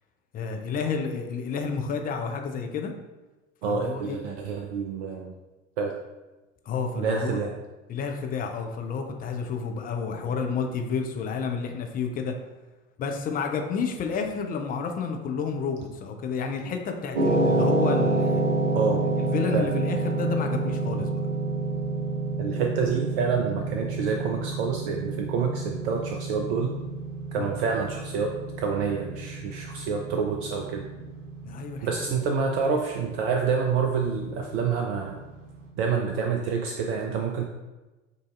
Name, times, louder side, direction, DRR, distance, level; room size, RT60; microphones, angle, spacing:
voice 1, 0.3-2.9 3.6-4.2 6.7-7.4 7.9-12.3 13.0-18.4 19.2-21.1 27.3-27.5 31.4-31.9, left 5 dB, 20° left, 3 dB, 0.5 m, -30 dB
voice 2, 3.6-5.3 5.8-6.0 7.0-7.5 18.7-19.0 19.5-19.7 22.4-26.7 27.3-30.9 31.8-35.2 35.8-37.4, right 5 dB, 50° right, 2 dB, 0.5 m, -27 dB
sound 1, 17.2-35.4, right 2 dB, 65° right, 1.0 m, -29 dB
7.8 x 2.7 x 2.5 m, 1.1 s
figure-of-eight pair, 70°, 39 cm